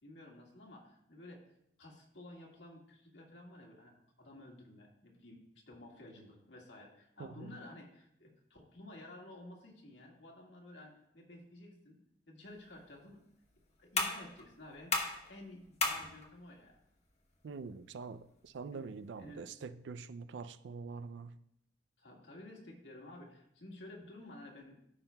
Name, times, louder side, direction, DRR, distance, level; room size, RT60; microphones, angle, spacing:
voice 1, 0.0-1.4 1.8-3.9 4.2-5.4 5.7-12.0 12.3-13.2 13.8-16.8 18.7-18.9 19.2-19.4 22.0-24.8, left 1 dB, 75° left, 1.8 m, -53 dB
voice 2, 7.2-7.5 17.4-21.4, right 4 dB, 75° right, 0.4 m, -45 dB
sound 1, 12.4-19.4, left 3 dB, 40° left, 1.2 m, -40 dB
14.5 x 5.8 x 2.3 m
head